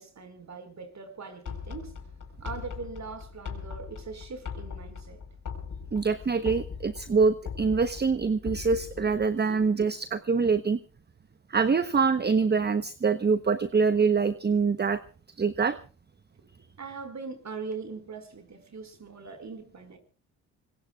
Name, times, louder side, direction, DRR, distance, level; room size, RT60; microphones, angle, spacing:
voice 1, 0.0-1.9 2.4-5.2 8.4-8.5 8.8-8.9 9.5-9.6 16.4-16.5 16.8-20.0, right 4 dB, 45° right, 9 dB, 5.1 m, -41 dB
sound 1, 1.5-9.3, left 6 dB, 55° left, 4.6 m, -40 dB
voice 2, 5.9-10.8 11.5-15.0 15.4-15.8, right 5 dB, 25° right, 13 dB, 1.0 m, -25 dB
25.0 x 21.5 x 2.4 m, 0.35 s
supercardioid pair, 55°, 37 cm